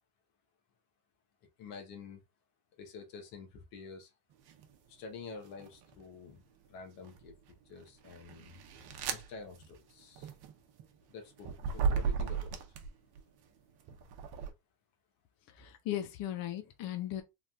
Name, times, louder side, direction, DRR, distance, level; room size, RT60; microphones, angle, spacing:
voice 1, 1.6-2.2 2.8-4.1 4.9-7.3 7.7-8.6 9.1-10.3 11.1-12.8, left 5 dB, 85° left, 1.1 m, -48 dB
Flipping Pages, 4.5-4.8 5.4-6.2 6.8-13.2 13.8-14.5, right 6 dB, 55° right, 0.8 m, -36 dB
voice 2, 15.6-17.2, left 12 dB, 50° left, 0.6 m, -37 dB
3.4 x 2.4 x 2.3 m
supercardioid pair, 95°, 45 cm